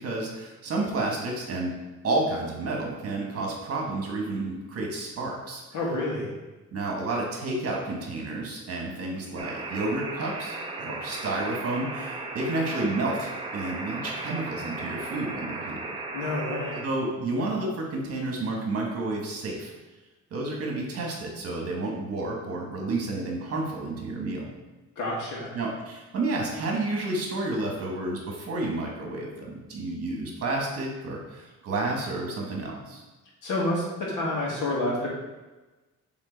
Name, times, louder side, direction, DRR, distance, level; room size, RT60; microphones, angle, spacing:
voice 1, 0.0-1.7 2.0-5.6 6.7-15.9 16.8-19.7 20.3-24.5 25.5-33.0, right 2 dB, 50° right, 0 dB, 1.4 m, -30 dB
voice 2, 5.7-6.3 16.1-16.8 25.0-25.5 33.4-35.1, left 2 dB, 80° left, -3 dB, 2.1 m, -28 dB
sound 1, 9.4-16.8, right 3 dB, 20° right, 0.6 m, -36 dB
7.2 x 3.7 x 4.0 m, 1.1 s
cardioid pair, 175°, 30 cm